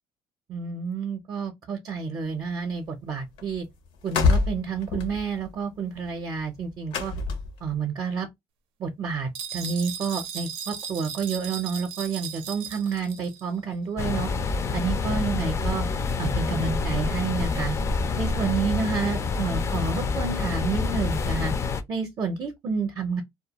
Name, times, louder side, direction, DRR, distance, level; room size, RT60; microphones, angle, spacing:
voice 1, 0.5-3.6 4.0-7.1 7.6-8.3 8.8-14.3 14.7-15.8 16.2-17.7 18.2-21.5 21.9-23.2, right 5 dB, 45° right, 0.6 m, -29 dB
sound 1, 3.1-3.2 3.4-3.7 3.9-7.7, left 4 dB, 80° left, 0.6 m, -26 dB
sound 2, 9.3-13.5, right 8 dB, 90° right, 0.5 m, -36 dB
sound 3, 14.0-21.8, left 4 dB, 30° left, 0.3 m, -27 dB
2.3 x 2.2 x 2.8 m
cardioid pair, 130°, 9 cm